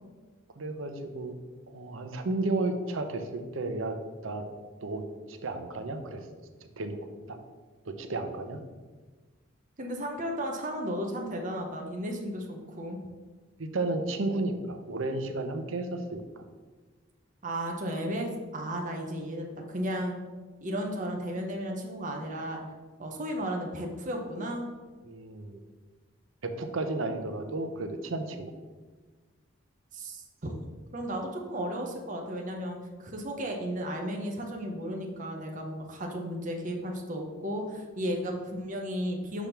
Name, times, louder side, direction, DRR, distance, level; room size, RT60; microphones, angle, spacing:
voice 1, 0.6-1.4 1.7-4.0 4.2-4.5 4.8-6.2 6.6-7.0 7.3-7.4 7.9-8.6 13.6-16.4 23.4-23.5 25.1-25.6 26.4-28.5, right 2 dB, 75° right, 7 dB, 0.7 m, -33 dB
voice 2, 9.8-13.0 17.4-20.1 20.6-22.6 23.0-24.7 29.9-30.5 30.9-39.5, equal, 40° right, 1 dB, 0.8 m, -34 dB
6.0 x 3.5 x 5.8 m, 1.3 s
head